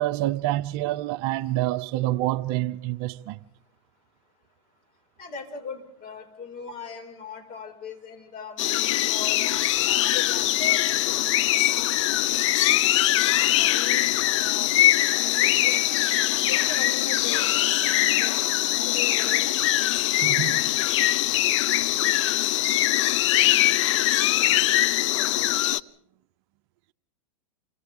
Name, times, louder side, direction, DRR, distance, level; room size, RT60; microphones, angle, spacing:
voice 1, 0.0-3.4 20.2-20.7, right 15 dB, 50° right, 0.7 m, -27 dB
voice 2, 5.2-10.8 13.6-14.7 15.1-15.9 16.5-17.5 18.2-18.4 18.8-19.6, left 5 dB, 40° left, 5.5 m, -39 dB
sound 1, 8.6-25.8, left 14 dB, 65° left, 0.7 m, -22 dB
29.0 x 25.5 x 3.7 m
hypercardioid pair, 115°, 17 cm